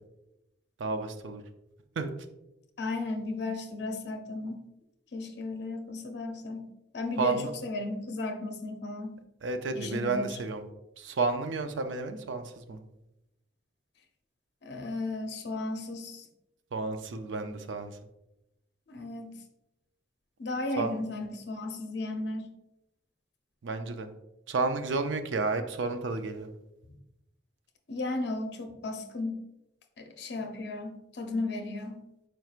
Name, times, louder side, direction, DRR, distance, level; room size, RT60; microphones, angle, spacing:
voice 1, 0.8-1.4 2.0-2.1 7.2-7.5 9.4-10.6 11.0-12.8 16.7-17.9 20.8-20.9 23.6-24.1 24.5-26.5, right 3 dB, 75° right, 8 dB, 0.5 m, -31 dB
voice 2, 2.8-4.6 5.1-6.6 6.9-9.1 9.7-10.4 14.6-16.3 18.9-19.3 20.4-22.5 27.9-29.4 30.0-32.0, left 2 dB, 60° left, 4 dB, 0.6 m, -35 dB
4.5 x 4.4 x 2.4 m, 0.90 s
head